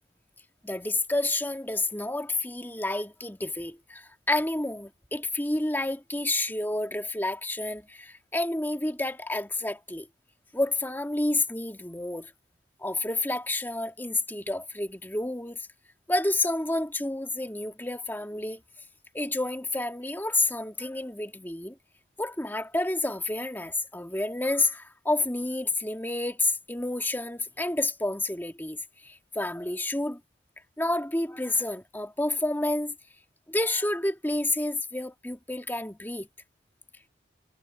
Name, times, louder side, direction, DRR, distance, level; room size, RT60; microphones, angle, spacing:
voice 1, 0.6-10.1 10.5-12.3 12.8-15.7 16.1-18.6 19.1-21.8 22.2-30.2 30.8-33.0 33.5-36.3, left 2 dB, 10° left, 1.9 m, -29 dB
head